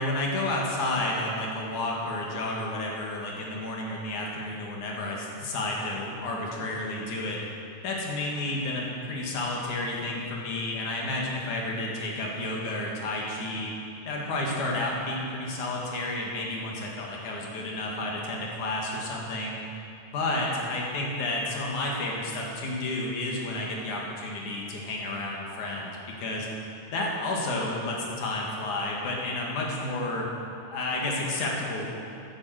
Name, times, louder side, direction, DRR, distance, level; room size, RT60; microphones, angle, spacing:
voice 1, 0.0-7.4 7.8-13.7 14.1-19.6 20.1-26.5 26.9-30.3 30.7-31.9, left 2 dB, 75° left, -2 dB, 3.4 m, -31 dB
14.0 x 9.4 x 6.5 m, 2.5 s
omnidirectional pair, 3.6 m